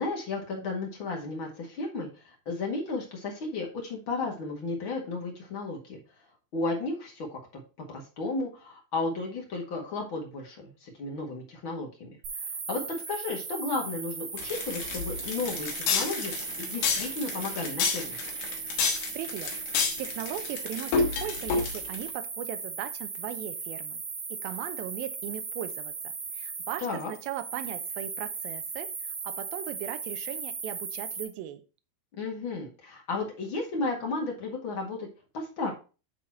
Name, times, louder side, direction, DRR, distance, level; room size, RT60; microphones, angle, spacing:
voice 1, 0.0-6.0 6.5-7.6 7.9-18.2 26.8-27.1 32.1-35.1 35.3-35.7, left 3 dB, 50° left, 0 dB, 1.5 m, -34 dB
sound 1, 12.2-31.2, right 5 dB, 50° right, 2.6 m, -37 dB
sound 2, 14.4-22.0, left 5 dB, 75° left, 3.5 m, -30 dB
voice 2, 19.1-24.0 24.3-31.6, right 12 dB, 80° right, 9 dB, 2.2 m, -38 dB
9.7 x 4.0 x 4.3 m, 0.33 s
omnidirectional pair, 5.0 m